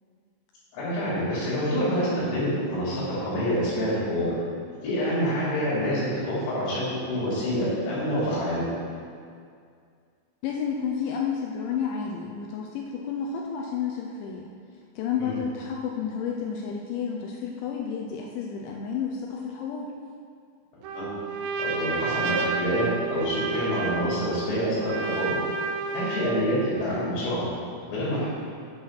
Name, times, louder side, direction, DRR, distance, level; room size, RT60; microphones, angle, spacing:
voice 1, 0.7-4.3 4.8-8.6 15.2-15.3 20.9-21.1 21.6-25.4 25.9-27.5 27.9-28.3, equal, 60° left, -9 dB, 4.9 m, -27 dB
voice 2, 10.4-14.5 15.0-19.9, left 7 dB, 80° left, 0 dB, 2.7 m, -31 dB
Trumpet, 20.8-26.5, right 4 dB, 85° right, 3.3 m, -30 dB
8.7 x 7.5 x 5.8 m, 2.2 s
omnidirectional pair, 6.0 m